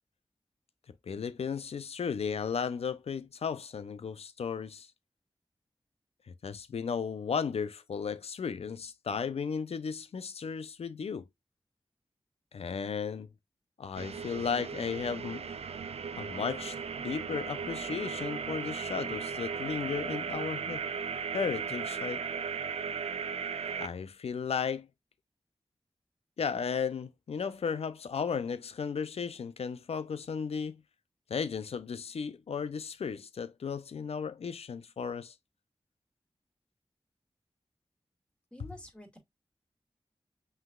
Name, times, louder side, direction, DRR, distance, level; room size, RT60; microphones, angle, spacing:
voice 1, 1.1-4.9 6.3-11.3 12.5-13.3 13.8-15.5 16.1-20.9 21.3-22.3 23.8-24.9 26.4-30.8 31.3-35.3, left 6 dB, 75° left, 0.5 m, -35 dB
sound 1, 13.9-23.9, right 6 dB, 75° right, 0.5 m, -36 dB
voice 2, 38.5-39.2, equal, 10° left, 2.1 m, -48 dB
5.6 x 3.3 x 2.3 m
cardioid pair, 45°, 10 cm